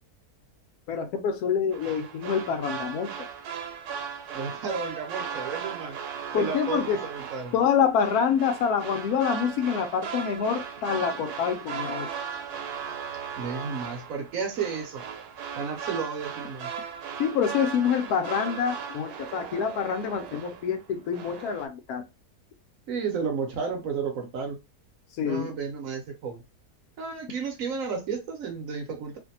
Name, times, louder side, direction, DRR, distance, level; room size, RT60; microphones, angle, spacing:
voice 1, 0.9-3.1 6.3-7.0 7.5-12.1 17.2-22.0 25.2-25.5, left 7 dB, 75° left, 1.0 m, -26 dB
sound 1, 1.7-20.8 21.1-21.7, right 7 dB, 90° right, 1.1 m, -37 dB
voice 2, 4.3-6.0 6.3-7.6 13.4-15.0 15.5-16.7 22.9-24.6 25.2-26.4 27.0-29.2, right 5 dB, 65° right, 1.0 m, -32 dB
2.5 x 2.5 x 2.7 m
omnidirectional pair, 1.6 m